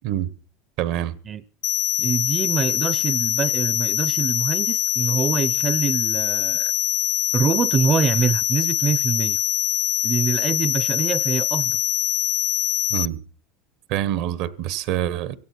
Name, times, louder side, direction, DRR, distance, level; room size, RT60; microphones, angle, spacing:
voice 1, 0.8-1.2 12.9-13.2 13.9-15.3, right 12 dB, 65° right, 1.1 m, -26 dB
sound 1, 1.6-13.1, left 14 dB, 50° left, 0.9 m, -23 dB
voice 2, 2.0-6.7 7.3-9.4 10.0-11.8, right 6 dB, 30° right, 0.7 m, -24 dB
16.5 x 16.5 x 4.5 m
supercardioid pair, 130°, 0 cm